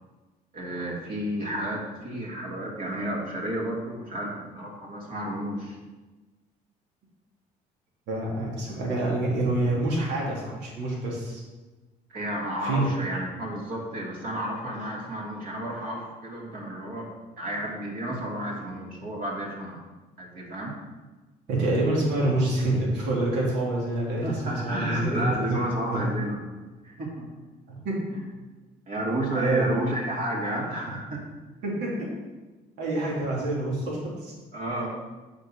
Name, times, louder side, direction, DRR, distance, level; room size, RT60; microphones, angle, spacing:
voice 1, 0.5-5.8 12.1-19.8 20.2-20.8 24.2-26.4 26.8-27.3 28.1-28.2 28.9-31.3 34.5-34.9, right 1 dB, 55° right, -3 dB, 3.1 m, -31 dB
voice 2, 8.1-11.4 12.6-12.9 21.5-25.6 25.9-26.0 27.7-28.0 29.3-29.6 31.6-32.1 32.8-34.3, right 2 dB, 80° right, -4 dB, 2.9 m, -27 dB
8.1 x 5.2 x 6.4 m, 1.2 s
cardioid pair, 110°, 17 cm